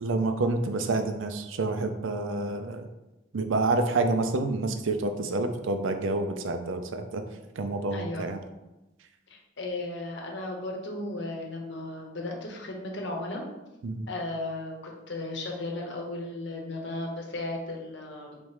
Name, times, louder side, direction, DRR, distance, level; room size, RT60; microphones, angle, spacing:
voice 1, 0.0-2.9 3.3-7.2 7.6-8.4 13.8-14.1, right 2 dB, 85° right, 7 dB, 0.5 m, -28 dB
voice 2, 7.9-8.3 9.3-13.4 14.1-18.4, left 2 dB, 65° left, 0 dB, 0.9 m, -35 dB
3.5 x 3.1 x 4.8 m, 1.0 s
head